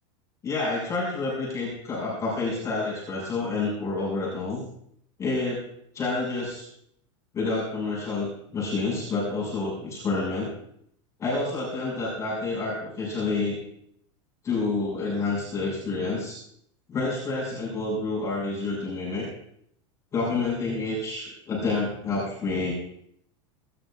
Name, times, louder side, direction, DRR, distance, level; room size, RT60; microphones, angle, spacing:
voice 1, 0.4-4.6 5.2-5.6 5.9-6.6 7.3-10.5 11.2-13.6 14.4-16.4 16.9-19.3 20.1-22.7, left 3 dB, 20° left, -5 dB, 6.2 m, -28 dB
26.0 x 12.5 x 2.5 m, 0.71 s
supercardioid pair, 165°, 16 cm